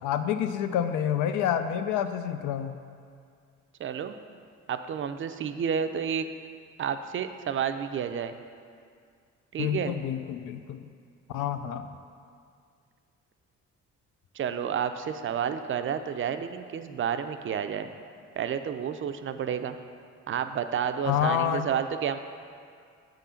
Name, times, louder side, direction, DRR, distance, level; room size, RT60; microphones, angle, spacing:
voice 1, 0.0-2.8 9.6-10.9 11.3-11.9 21.0-21.7, left 9 dB, 85° left, 9 dB, 0.4 m, -28 dB
voice 2, 3.8-4.2 4.7-6.3 6.8-8.3 9.5-10.0 14.4-17.9 18.4-19.8 20.3-22.2, right 8 dB, 45° right, 9 dB, 0.4 m, -30 dB
7.0 x 3.8 x 5.6 m, 2.2 s
cardioid pair, 90°, 30 cm